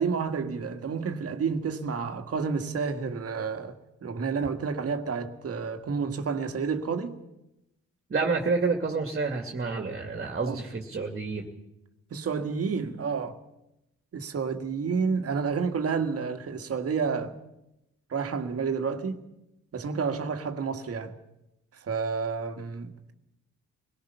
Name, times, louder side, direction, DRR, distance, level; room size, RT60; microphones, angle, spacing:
voice 1, 0.0-3.7 4.0-7.2 10.4-10.6 12.1-13.4 14.1-17.4 18.1-19.2 19.7-21.1 21.9-23.1, right 5 dB, 50° right, 1.9 m, -30 dB
voice 2, 8.1-11.5, right 4 dB, 35° right, 2.5 m, -29 dB
25.5 x 18.0 x 5.8 m
cardioid pair, 90°, 30 cm